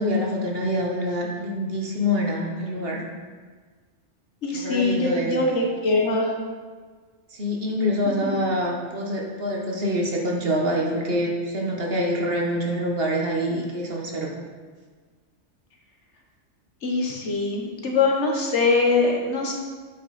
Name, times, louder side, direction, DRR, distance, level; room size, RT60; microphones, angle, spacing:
voice 1, 0.0-3.0 4.5-5.3 7.3-14.4, equal, 55° right, -1 dB, 1.4 m, -26 dB
voice 2, 4.4-6.4 8.0-8.4 16.8-19.5, left 3 dB, 70° left, 0 dB, 1.6 m, -23 dB
8.5 x 6.0 x 4.2 m, 1.5 s
omnidirectional pair, 1.2 m